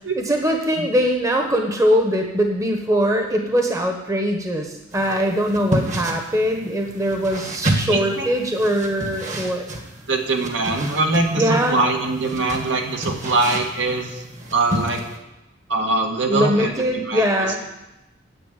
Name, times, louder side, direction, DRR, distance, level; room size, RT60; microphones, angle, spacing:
voice 1, 0.2-9.7 11.4-11.8 16.3-17.6, equal, 15° right, 3 dB, 1.2 m, -21 dB
sound 1, 4.9-15.2, right 1 dB, 40° right, 1.7 m, -30 dB
voice 2, 7.9-8.3 10.1-14.2 14.5-15.0 15.7-17.6, right 2 dB, 70° right, 2 dB, 1.9 m, -22 dB
10.0 x 8.1 x 9.2 m, 0.94 s
head